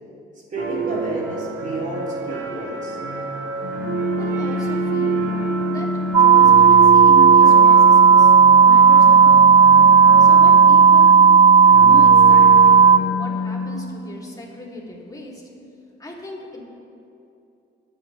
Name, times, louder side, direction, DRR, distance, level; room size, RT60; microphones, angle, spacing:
voice 1, 0.5-3.0, right 1 dB, 40° right, -5 dB, 3.8 m, -30 dB
sound 1, 0.6-13.1, right 5 dB, 70° right, 2.4 m, -28 dB
Organ, 3.6-14.2, left 5 dB, 60° left, 0.6 m, -27 dB
voice 2, 4.2-5.3 5.7-5.9 6.2-8.3 8.6-9.4 10.2-11.2 11.8-12.8 13.1-15.4 16.0-16.6, equal, 20° left, -4 dB, 3.4 m, -35 dB
sound 2, 6.1-13.0, right 6 dB, 25° right, 0.3 m, -11 dB
26.0 x 9.6 x 3.6 m, 2.7 s
cardioid pair, 90°, 20 cm